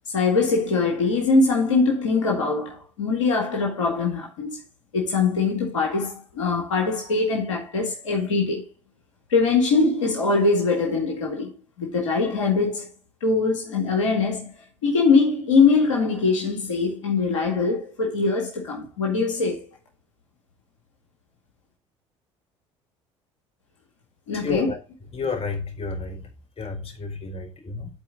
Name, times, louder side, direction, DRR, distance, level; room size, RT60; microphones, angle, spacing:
voice 1, 0.1-4.6 4.9-8.6 9.3-11.5 11.8-12.9 13.2-14.5 14.8-19.6 24.3-24.7, left 4 dB, 85° left, 2.0 m, -22 dB
voice 2, 24.3-24.8 25.1-26.3 26.6-27.9, left 4 dB, 40° left, 4.7 m, -31 dB
12.5 x 4.6 x 3.9 m
hypercardioid pair, 60°, 15 cm